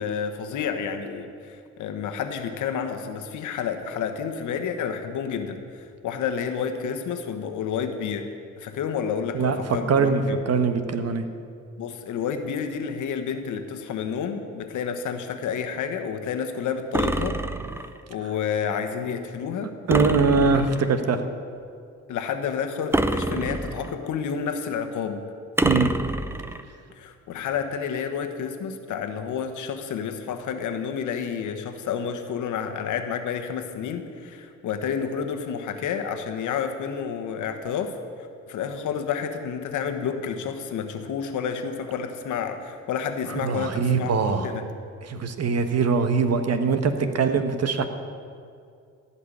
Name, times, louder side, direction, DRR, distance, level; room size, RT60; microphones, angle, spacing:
voice 1, 0.0-8.3 8.6-10.4 11.8-17.4 18.1-19.7 20.4-20.6 22.1-25.2 27.0-37.9 38.2-44.6, left 7 dB, 80° left, 7 dB, 1.3 m, -30 dB
voice 2, 9.9-10.2 10.5-11.2 19.9-21.2 25.6-25.9 43.4-44.5 45.1-47.9, right 5 dB, 55° right, 8 dB, 1.3 m, -22 dB
sound 1, 16.9-18.0 19.9-21.0 22.9-24.1 25.6-26.6, right 1 dB, 10° right, 0.6 m, -26 dB
15.0 x 5.8 x 9.9 m, 2.3 s
cardioid pair, 90°, 30 cm